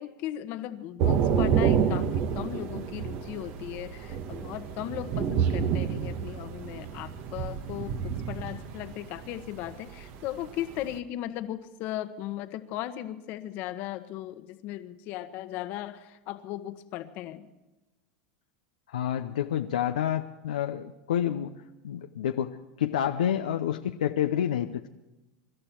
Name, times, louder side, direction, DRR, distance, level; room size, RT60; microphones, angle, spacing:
voice 1, 0.0-17.5, left 13 dB, 55° left, 10 dB, 1.3 m, -37 dB
Thunder / Rain, 1.0-11.0, right 7 dB, 50° right, 1.4 m, -29 dB
voice 2, 18.9-21.5 21.8-24.9, left 10 dB, 80° left, 6 dB, 0.7 m, -29 dB
25.0 x 12.5 x 4.5 m, 1.0 s
hypercardioid pair, 95°, 4 cm